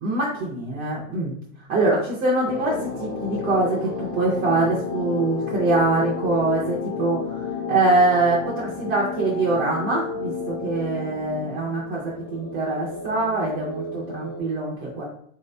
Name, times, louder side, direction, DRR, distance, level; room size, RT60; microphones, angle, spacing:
voice 1, 0.0-1.3 1.7-15.0, right 2 dB, 20° right, -6 dB, 0.3 m, -24 dB
sound 1, 2.4-14.4, left 5 dB, 35° left, 0.9 m, -32 dB
3.8 x 2.7 x 3.2 m, 0.64 s
supercardioid pair, 170°, 38 cm